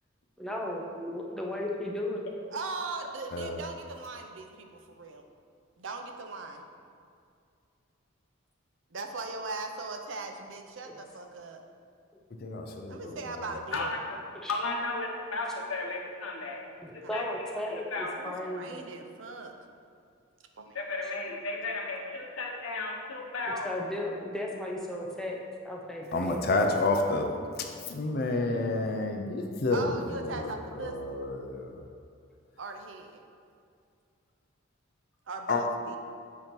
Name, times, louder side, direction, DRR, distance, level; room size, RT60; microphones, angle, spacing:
voice 1, 0.4-2.3 10.9-11.0 14.3-14.6 16.8-18.9 23.6-25.4 25.6-26.4, left 1 dB, 5° left, -2 dB, 0.5 m, -35 dB
voice 2, 2.5-5.2 5.8-6.7 8.9-11.6 12.9-13.9 17.0-17.7 18.1-19.5 20.6-20.7 27.0-27.6 29.7-31.2 32.6-33.2 35.3-36.0, right 3 dB, 65° right, 5 dB, 0.6 m, -39 dB
voice 3, 12.4-13.2 26.1-27.3 27.9-29.9 30.2-30.5 30.8-31.7 35.5-35.6, left 2 dB, 50° left, 3 dB, 0.5 m, -29 dB
voice 4, 13.7-14.2 14.5-16.6 16.9-18.1 20.7-23.7, left 3 dB, 85° left, 0 dB, 1.0 m, -34 dB
8.3 x 2.9 x 5.3 m, 2.4 s
head